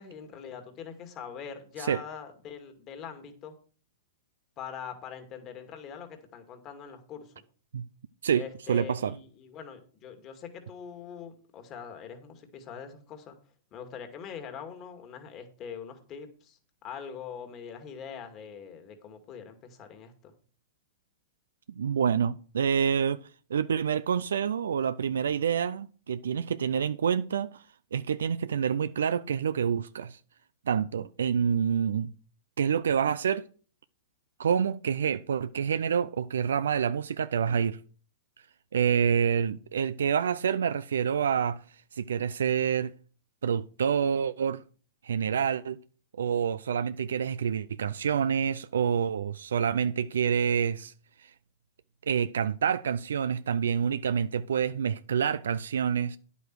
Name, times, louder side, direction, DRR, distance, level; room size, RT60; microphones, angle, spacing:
voice 1, 0.0-3.6 4.6-7.3 8.3-13.4 13.7-20.3, left 7 dB, 35° left, 2.2 m, -43 dB
voice 2, 8.7-9.2 21.7-23.2 23.5-27.6 27.9-30.2 30.7-32.1 32.6-33.5 34.4-37.8 38.7-41.6 41.9-42.9 43.4-44.6 45.0-45.8 46.2-50.9 52.1-56.2, right 7 dB, 80° right, 0.4 m, -27 dB
9.7 x 8.3 x 4.6 m
hypercardioid pair, 120°, 0 cm